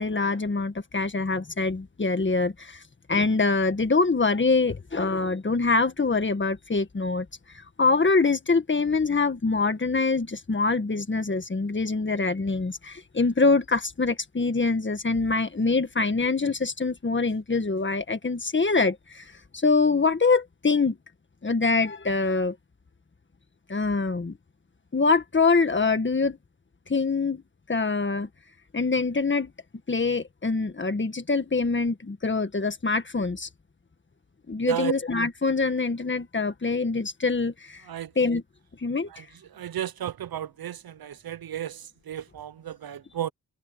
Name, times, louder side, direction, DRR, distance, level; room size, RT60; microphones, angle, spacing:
voice 1, 0.0-2.8 3.1-7.2 7.8-19.2 19.5-21.0 21.4-22.5 23.7-24.4 24.9-26.4 26.9-27.4 27.7-28.3 28.7-29.5 29.9-33.5 34.5-37.8 38.1-38.4 38.8-39.2, left 4 dB, 25° left, 1.7 m, -24 dB
voice 2, 39.5-43.3, right 11 dB, 60° right, 0.7 m, -33 dB
wide cardioid pair, 100°, 42 cm